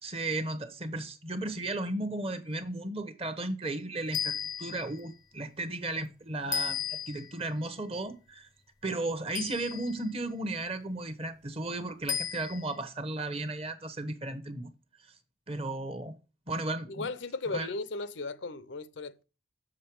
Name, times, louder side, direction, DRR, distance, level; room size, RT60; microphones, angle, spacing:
voice 1, 0.0-8.5 8.8-14.7 15.5-16.2 16.5-17.1 17.5-17.7, right 2 dB, 30° right, 0.9 m, -35 dB
sound 1, 4.1-5.0 6.5-7.4 9.3-10.1 12.1-12.8, left 7 dB, 20° left, 0.6 m, -34 dB
voice 2, 16.9-19.2, left 3 dB, 75° left, 0.6 m, -36 dB
7.3 x 5.4 x 4.6 m
head